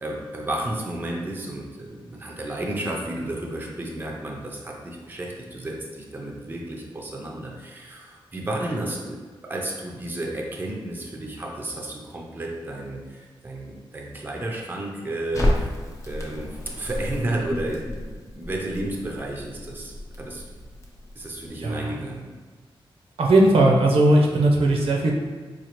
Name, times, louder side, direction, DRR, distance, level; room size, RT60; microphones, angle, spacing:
voice 1, 0.0-9.2 9.4-15.8 16.1-18.0 18.3-20.4 21.2-22.3, right 1 dB, 20° right, -1 dB, 0.5 m, -32 dB
Crackle, 15.3-21.5, left 1 dB, 30° left, 0.6 m, -31 dB
voice 2, 21.6-21.9 23.2-25.1, right 1 dB, 80° right, -1 dB, 0.7 m, -18 dB
4.9 x 2.4 x 2.9 m, 1.5 s
wide cardioid pair, 150°, 10 cm